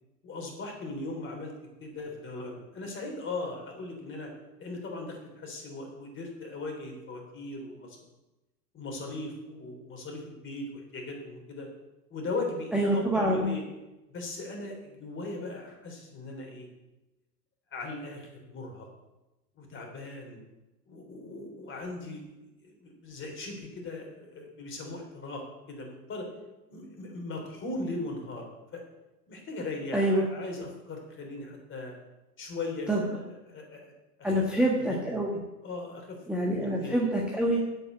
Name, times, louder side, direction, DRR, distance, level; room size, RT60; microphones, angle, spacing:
voice 1, 0.2-1.5 1.8-4.3 4.6-8.0 8.7-11.7 12.1-13.6 14.1-16.7 17.7-18.9 19.6-20.4 20.9-22.2 22.6-26.3 26.7-28.8 29.3-31.9 32.4-32.9 33.5-33.9 34.2-34.4 34.8-35.0 35.6-36.2 36.5-37.0, left 2 dB, 25° left, 2 dB, 3.6 m, -38 dB
voice 2, 12.7-13.6 29.9-30.2 32.9-33.1 34.2-35.3 36.3-37.6, right 1 dB, ahead, -2 dB, 1.4 m, -26 dB
8.5 x 8.2 x 7.8 m, 1.0 s
hypercardioid pair, 105°, 48 cm